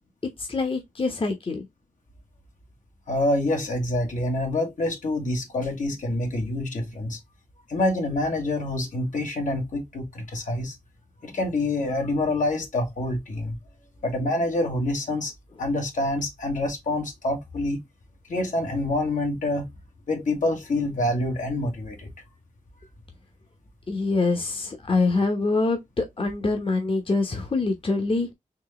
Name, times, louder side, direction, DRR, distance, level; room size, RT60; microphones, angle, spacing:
voice 1, 0.4-1.7 23.9-28.3, left 3 dB, 40° left, 1.0 m, -25 dB
voice 2, 3.1-7.2 7.7-10.7 11.2-13.6 14.0-15.3 15.6-17.8 18.3-19.7 20.1-22.1, left 1 dB, 70° left, 1.5 m, -26 dB
4.5 x 2.8 x 3.1 m
cardioid pair, 60°, 13 cm